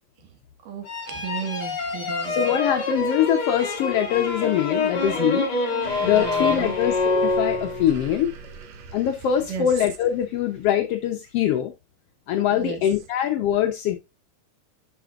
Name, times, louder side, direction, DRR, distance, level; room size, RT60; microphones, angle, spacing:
voice 1, 0.7-2.4 6.0-6.8 9.5-9.7 12.5-12.8, right 6 dB, 80° right, 3.0 m, -33 dB
sound 1, 0.9-8.0, left 3 dB, 40° left, 1.9 m, -26 dB
voice 2, 2.3-5.5 6.0-8.3 8.9-11.7 12.3-14.0, left 10 dB, 80° left, 1.4 m, -23 dB
sound 2, 5.8-10.8, right 6 dB, 65° right, 2.0 m, -42 dB
10.0 x 5.5 x 2.4 m
omnidirectional pair, 3.7 m